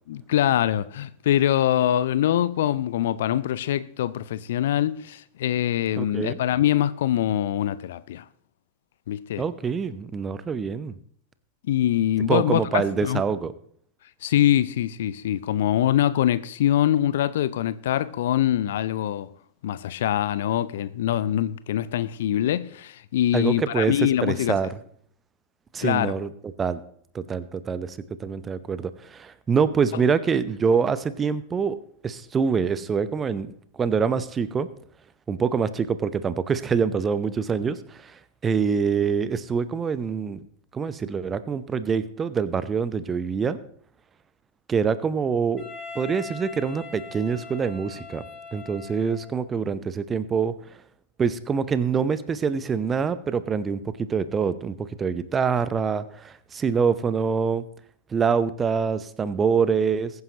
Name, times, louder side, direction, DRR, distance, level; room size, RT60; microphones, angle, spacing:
voice 1, 0.1-8.2 9.1-9.4 11.7-13.2 14.2-19.3 19.6-24.6 25.8-26.1, left 11 dB, 55° left, 0.5 m, -24 dB
voice 2, 6.0-6.4 9.4-10.9 12.3-13.5 23.3-24.8 25.7-26.3 26.6-26.8 27.1-31.8 32.0-34.7 35.3-40.4 40.7-43.6 44.7-45.6 45.9-48.2 48.5-50.8 51.2-53.8 54.1-57.6 58.1-60.1, right 6 dB, 20° right, 0.7 m, -25 dB
Wind instrument woodwind instrument, 45.6-49.4, left 4 dB, 20° left, 3.9 m, -41 dB
21.5 x 9.5 x 2.9 m
figure-of-eight pair, 90°, 0 cm